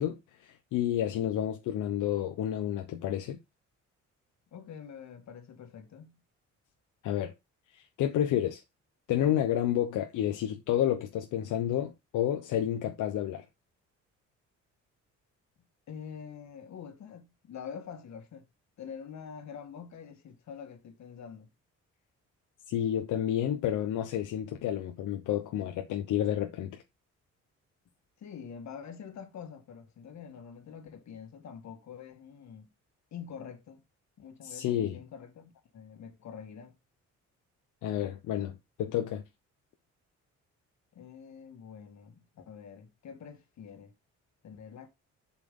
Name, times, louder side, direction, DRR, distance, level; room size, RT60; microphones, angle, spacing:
voice 1, 0.0-3.4 7.0-7.3 7.7-8.6 9.1-13.4 22.7-26.8 34.4-35.0 37.8-39.2, left 11 dB, 85° left, 1.0 m, -30 dB
voice 2, 4.5-6.2 15.9-18.5 18.8-21.5 28.2-32.7 33.1-33.8 34.2-36.7 40.9-43.9 44.4-44.9, left 7 dB, 65° left, 2.0 m, -46 dB
7.1 x 5.8 x 3.8 m
cardioid pair, 90°, 30 cm